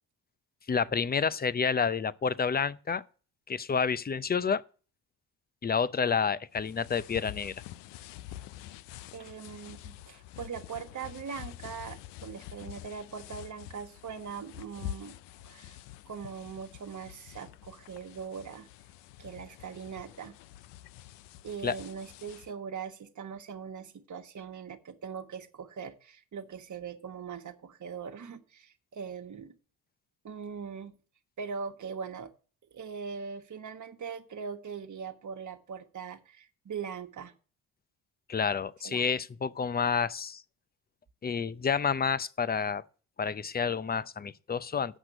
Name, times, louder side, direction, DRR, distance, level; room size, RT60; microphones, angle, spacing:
voice 1, 0.7-3.0 3.5-4.6 5.6-7.5 21.6-21.8 38.3-40.4 41.2-42.8 43.2-45.0, left 6 dB, 25° left, 0.6 m, -29 dB
sound 1, 6.5-22.5, left 13 dB, 80° left, 0.6 m, -47 dB
voice 2, 9.1-15.1 15.4-15.8 16.1-18.7 19.2-20.3 21.4-29.5 30.2-31.0 31.4-32.3 32.7-37.3 38.8-39.0, right 6 dB, 45° right, 1.5 m, -41 dB
8.2 x 5.9 x 7.9 m
supercardioid pair, 60°, 41 cm